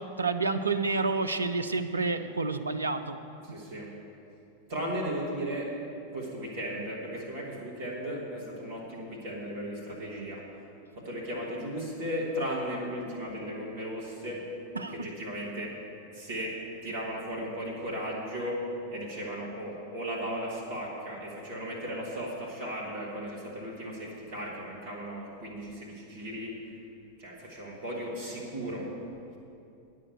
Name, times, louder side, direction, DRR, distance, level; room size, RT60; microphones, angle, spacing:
voice 1, 0.0-3.2 14.8-15.1, right 3 dB, 80° right, 8 dB, 0.5 m, -29 dB
voice 2, 3.4-3.9 4.7-5.7 6.1-10.4 11.0-14.4 14.9-15.7 16.1-16.5 16.8-18.6 18.9-26.5 27.2-28.9, equal, 55° right, -4 dB, 2.1 m, -36 dB
9.7 x 6.5 x 8.2 m, 2.6 s
figure-of-eight pair, 90°, 0 cm